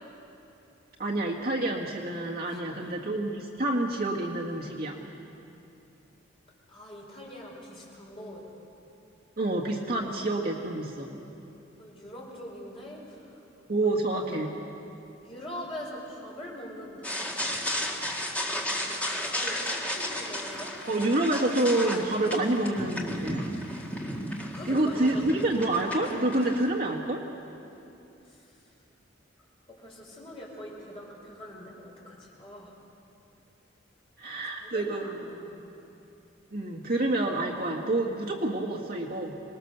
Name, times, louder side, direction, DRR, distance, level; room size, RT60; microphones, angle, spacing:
voice 1, 1.0-5.0 9.4-11.1 13.7-14.5 20.9-23.5 24.7-27.2 34.2-35.2 36.5-39.3, right 2 dB, 50° right, -1 dB, 1.8 m, -28 dB
voice 2, 2.5-2.9 6.7-8.4 11.8-13.3 13.8-14.4 15.2-17.4 19.1-20.8 24.5-25.4 28.3-28.4 29.7-32.7 34.4-35.6, equal, 30° left, -4 dB, 5.4 m, -43 dB
sound 1, 17.0-26.7, left 1 dB, 5° left, 1.8 m, -34 dB
25.5 x 20.0 x 6.8 m, 2.8 s
head